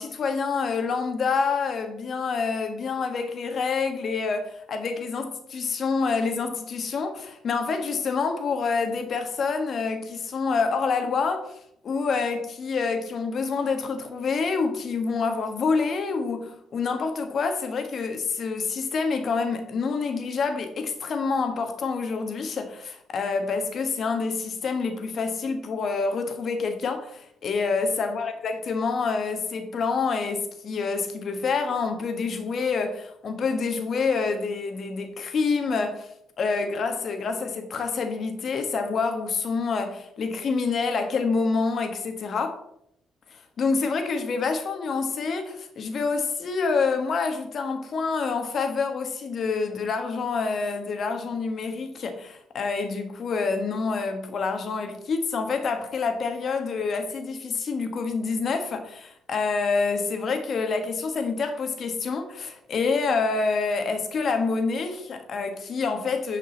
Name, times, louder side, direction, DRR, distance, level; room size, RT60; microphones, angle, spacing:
voice 1, 0.0-11.6 11.8-36.1 36.4-42.6 43.3-66.4, left 4 dB, 55° left, 1.5 m, -27 dB
9.9 x 5.3 x 4.1 m
cardioid pair, 90°, 0 cm